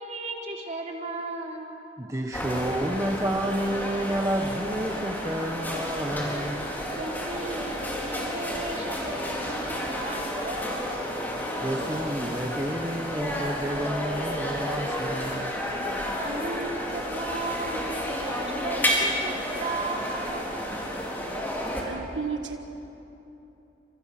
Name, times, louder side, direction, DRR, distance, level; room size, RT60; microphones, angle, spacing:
voice 1, 0.0-1.7 7.0-11.1 16.2-20.5, right 2 dB, 40° right, -1 dB, 3.8 m, -36 dB
voice 2, 2.0-6.7 11.6-15.5, right 1 dB, 15° right, 2 dB, 1.4 m, -30 dB
sound 1, 2.3-21.8, left 1 dB, 10° left, 4.5 m, -31 dB
voice 3, 21.9-22.6, right 5 dB, 80° right, 5 dB, 1.5 m, -32 dB
29.5 x 28.0 x 6.1 m, 3.0 s
head